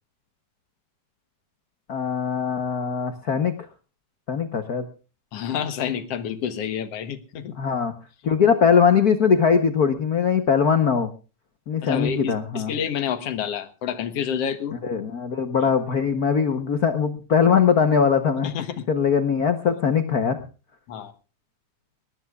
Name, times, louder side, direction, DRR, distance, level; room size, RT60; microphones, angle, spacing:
voice 1, 1.9-3.6 4.3-4.9 7.6-7.9 8.2-11.1 11.7-12.7 14.8-18.5 18.9-20.4, left 6 dB, 80° left, 9 dB, 0.8 m, -21 dB
voice 2, 5.3-7.5 11.8-14.8 15.6-15.7 18.4-18.9 20.9-21.1, left 8 dB, 60° left, 12 dB, 2.0 m, -29 dB
21.0 x 19.0 x 2.4 m, 0.34 s
omnidirectional pair, 3.4 m